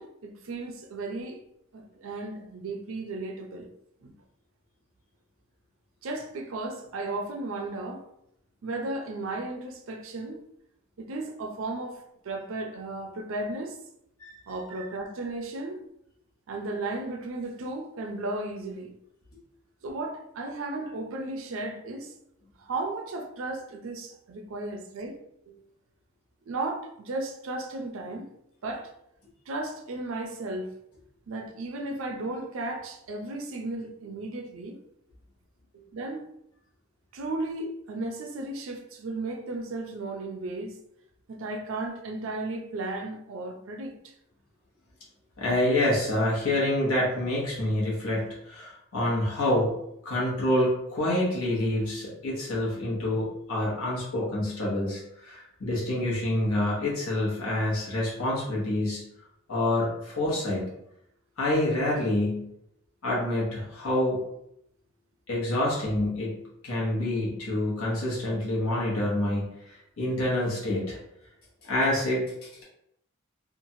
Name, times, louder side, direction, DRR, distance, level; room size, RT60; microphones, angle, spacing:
voice 1, 0.0-1.4 1.7-3.7 4.0-4.1 6.0-8.0 8.6-10.4 11.0-13.8 14.5-15.8 16.5-18.9 19.8-22.1 22.6-25.2 25.5-25.7 26.5-28.3 28.6-28.9 29.5-30.7 31.3-34.8 35.7-36.3 37.1-40.8 41.3-44.1, right 2 dB, 65° right, 0.4 m, -35 dB
voice 2, 45.4-49.8 50.0-59.0 59.5-60.7 61.4-62.5 63.0-64.2 65.3-71.0 71.6-72.6, left 1 dB, 80° left, 0.9 m, -27 dB
2.9 x 2.3 x 2.7 m
head